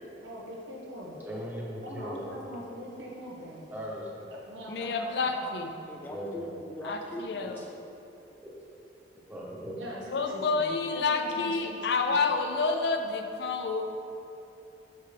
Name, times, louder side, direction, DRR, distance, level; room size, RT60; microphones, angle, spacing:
voice 1, 0.2-1.2 1.8-3.7 4.3-5.7 9.8-12.2, equal, 90° right, -4 dB, 1.4 m, -42 dB
voice 2, 1.2-2.2 3.7-4.3 6.0-6.6 9.2-9.8, equal, 10° right, -5 dB, 1.0 m, -38 dB
voice 3, 4.7-5.7 6.8-7.6 10.1-13.9, left 4 dB, 65° left, 5 dB, 0.5 m, -29 dB
voice 4, 5.9-7.8, equal, 10° left, 0 dB, 0.4 m, -41 dB
6.5 x 5.9 x 3.4 m, 2.9 s
head